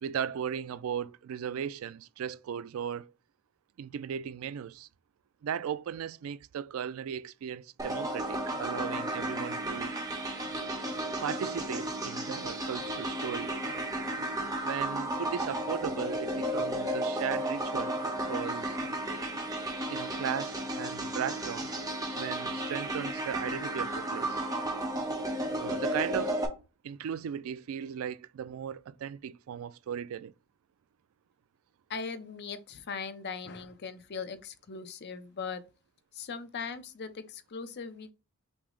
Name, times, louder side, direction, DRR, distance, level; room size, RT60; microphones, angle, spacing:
voice 1, 0.0-3.1 3.8-4.9 5.4-9.9 11.2-13.5 14.6-18.8 19.9-21.7 22.2-24.4 25.6-26.4 26.8-30.3, right 8 dB, 75° right, 0.3 m, -37 dB
sound 1, 7.8-26.5, right 1 dB, 15° right, 0.8 m, -33 dB
voice 2, 31.9-35.6 36.1-38.1, left 5 dB, 55° left, 0.6 m, -39 dB
6.0 x 2.0 x 3.7 m
head